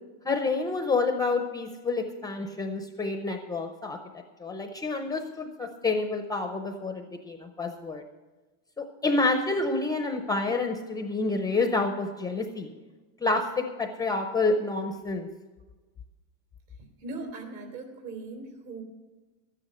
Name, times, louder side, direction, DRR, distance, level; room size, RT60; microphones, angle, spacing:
voice 1, 0.2-4.0 4.4-8.0 8.8-12.7 13.2-15.3, left 3 dB, 10° left, 5 dB, 0.5 m, -28 dB
voice 2, 17.0-18.8, right 3 dB, 60° right, 4 dB, 3.3 m, -39 dB
13.0 x 9.7 x 6.4 m, 1.2 s
cardioid pair, 170°, 37 cm